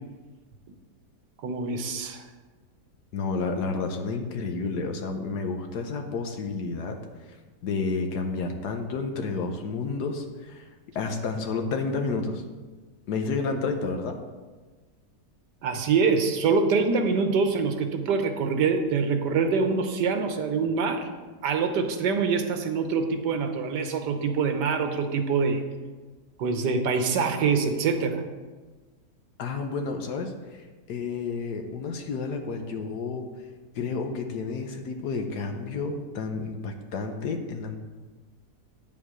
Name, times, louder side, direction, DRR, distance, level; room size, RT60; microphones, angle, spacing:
voice 1, 1.4-2.3 15.6-21.1 21.4-25.6 26.4-28.2, right 5 dB, 85° right, 6 dB, 1.5 m, -25 dB
voice 2, 3.1-7.0 7.3-7.4 7.6-10.7 10.9-12.4 13.1-14.2 29.4-33.3 33.7-37.8, left 4 dB, 75° left, 4 dB, 1.4 m, -30 dB
9.5 x 7.3 x 4.9 m, 1.3 s
omnidirectional pair, 1.8 m